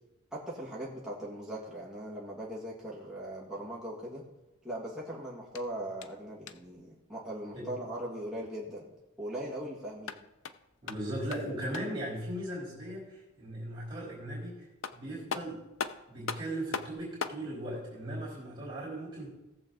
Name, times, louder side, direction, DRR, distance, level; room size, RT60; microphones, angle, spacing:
voice 1, 0.3-4.2 4.6-8.9 9.2-10.2, right 1 dB, 5° right, -7 dB, 1.9 m, -39 dB
sound 1, 5.4-6.8 9.8-12.1 14.4-14.5 14.8-17.5, left 5 dB, 65° left, 0.6 m, -40 dB
voice 2, 10.8-14.7 14.9-15.6 16.1-19.3, right 1 dB, 25° right, -7 dB, 3.5 m, -38 dB
18.0 x 7.1 x 4.0 m, 0.97 s
head